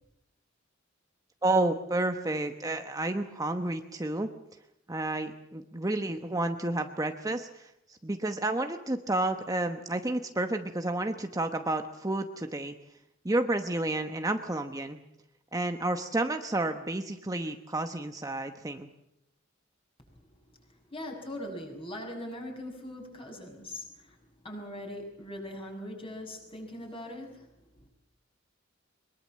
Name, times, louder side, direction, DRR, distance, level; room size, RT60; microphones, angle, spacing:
voice 1, 1.4-4.3 4.9-12.8 13.2-15.0 15.5-18.9, right 2 dB, 15° right, 6 dB, 1.0 m, -30 dB
voice 2, 20.9-24.1 24.4-27.4, left 1 dB, 25° left, 2 dB, 6.6 m, -40 dB
23.0 x 22.0 x 7.5 m, 0.83 s
head